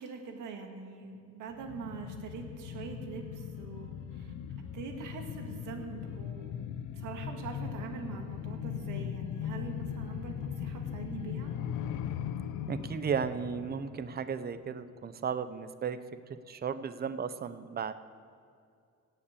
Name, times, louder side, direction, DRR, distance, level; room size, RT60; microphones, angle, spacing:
voice 1, 0.0-4.3 4.7-11.5, right 5 dB, 90° right, 3 dB, 1.9 m, -43 dB
sound 1, 1.5-14.8 15.1-15.2, left 9 dB, 90° left, 0.7 m, -39 dB
voice 2, 12.7-16.0 16.5-17.9, right 6 dB, 30° right, 12 dB, 0.7 m, -34 dB
16.5 x 5.8 x 8.4 m, 2.3 s
cardioid pair, 90°, 30 cm